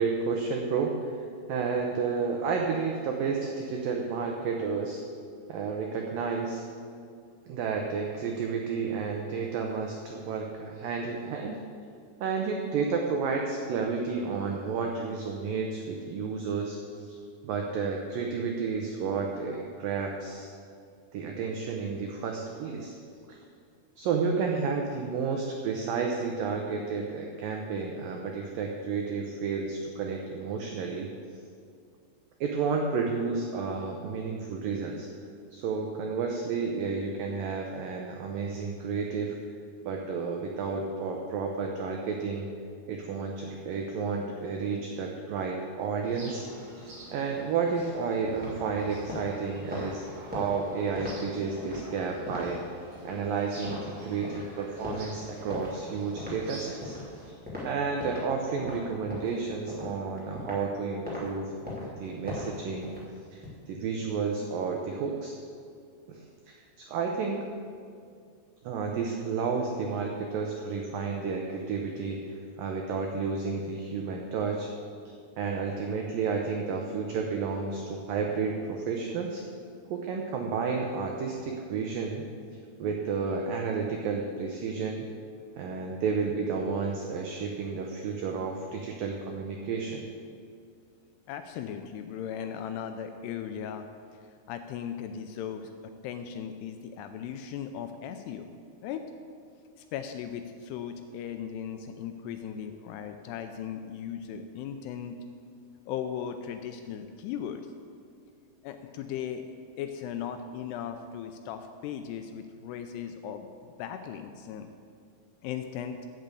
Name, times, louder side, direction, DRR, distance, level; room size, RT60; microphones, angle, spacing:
voice 1, 0.0-5.0 5.5-6.6 7.5-11.6 12.2-17.2 17.4-20.5 21.1-22.9 23.3-23.4 24.0-31.1 32.4-35.1 35.5-39.4 39.9-42.5 42.9-46.5 46.7-46.9 47.1-52.6 53.0-57.0 57.3-57.4 57.6-61.5 61.8-62.9 63.3-65.3 66.1-67.5 68.6-74.7 75.4-79.4 79.9-82.3 82.8-85.1 85.6-90.1, right 5 dB, 90° right, 2 dB, 1.9 m, -31 dB
sound 1, 46.0-57.3, right 1 dB, 45° right, 3.1 m, -48 dB
sound 2, 48.2-58.3 58.6-60.7 61.0-61.2 61.6-63.5, left 1 dB, 5° right, 1.6 m, -40 dB
voice 2, 91.3-93.9 94.1-98.5 98.8-99.1 99.8-105.2 105.9-107.6 108.6-109.4 109.8-114.7 115.4-116.0, left 8 dB, 80° left, 7 dB, 2.4 m, -37 dB
8.5 x 7.6 x 8.2 m, 2.3 s
omnidirectional pair, 5.1 m